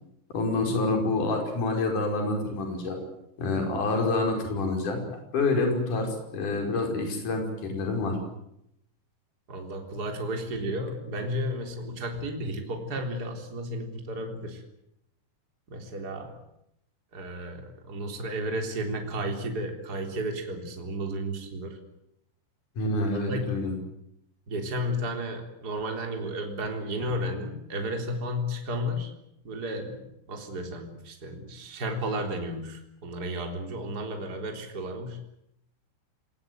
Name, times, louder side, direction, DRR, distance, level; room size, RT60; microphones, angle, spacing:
voice 1, 0.3-3.0 3.4-8.2 22.8-23.7, left 2 dB, 45° left, 3 dB, 6.5 m, -27 dB
voice 2, 9.5-14.6 15.7-16.4 17.1-21.8 23.1-23.5 24.5-29.1 29.4-35.2, equal, 20° right, 3 dB, 3.6 m, -33 dB
26.5 x 20.0 x 9.4 m, 0.80 s
omnidirectional pair, 5.4 m